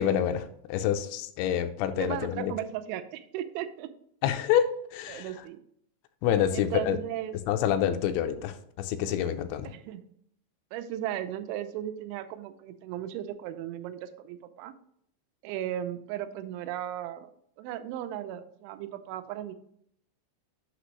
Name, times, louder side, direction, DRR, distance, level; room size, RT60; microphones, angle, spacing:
voice 1, 0.0-2.5 4.2-5.3 6.2-7.0 7.5-9.7, left 9 dB, 85° left, 8 dB, 3.0 m, -27 dB
voice 2, 2.0-3.9 5.1-5.6 6.5-7.3 9.1-9.4 9.6-10.1 10.7-14.7 15.4-17.3 17.6-19.5, right 11 dB, 85° right, 10 dB, 3.0 m, -36 dB
8.1 x 5.9 x 3.1 m, 0.69 s
omnidirectional pair, 5.3 m